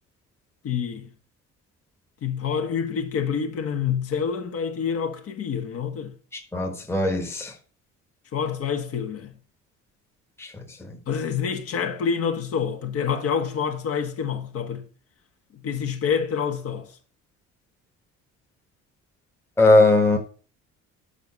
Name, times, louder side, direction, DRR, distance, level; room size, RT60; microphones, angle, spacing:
voice 1, 0.6-1.1 2.2-6.1 8.3-9.3 11.1-14.8 15.6-16.9, left 7 dB, 50° left, 1.5 m, -27 dB
voice 2, 6.5-7.5 10.4-10.5 10.8-10.9 19.6-20.2, left 2 dB, 10° left, 1.3 m, -19 dB
7.1 x 5.5 x 5.7 m
cardioid pair, 145°, 29 cm